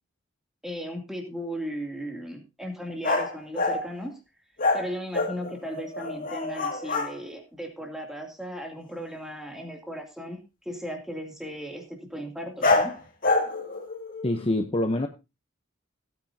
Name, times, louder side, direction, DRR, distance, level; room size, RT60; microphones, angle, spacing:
voice 1, 0.6-4.1 4.7-12.9, equal, ahead, 2 dB, 2.6 m, -36 dB
sound 1, 3.0-3.9 4.6-7.1 12.6-14.5, left 3 dB, 45° left, 2.1 m, -26 dB
voice 2, 14.2-15.1, left 1 dB, 30° left, 6 dB, 0.8 m, -25 dB
17.0 x 9.1 x 2.7 m, 0.26 s
head